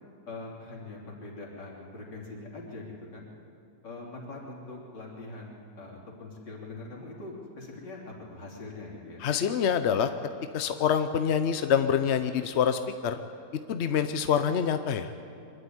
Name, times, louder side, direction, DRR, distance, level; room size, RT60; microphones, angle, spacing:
voice 1, 0.3-2.9 3.1-3.3 3.8-9.2, left 2 dB, 75° left, -3 dB, 4.1 m, -42 dB
voice 2, 9.2-10.1 10.5-13.2 13.7-15.1, left 8 dB, 55° left, 8 dB, 0.7 m, -26 dB
24.0 x 13.0 x 9.6 m, 2.5 s
omnidirectional pair, 1.9 m